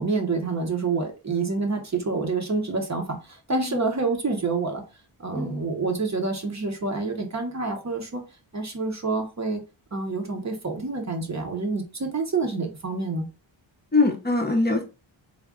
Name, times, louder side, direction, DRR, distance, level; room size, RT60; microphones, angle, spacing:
voice 1, 0.0-4.8 5.2-8.2 8.5-9.6 9.9-13.3, right 4 dB, 35° right, 4 dB, 0.7 m, -27 dB
voice 2, 3.5-3.8 5.3-5.7 13.9-14.8, left 3 dB, 20° left, 1 dB, 0.6 m, -23 dB
3.5 x 2.1 x 3.5 m, 0.31 s
wide cardioid pair, 135°, 48 cm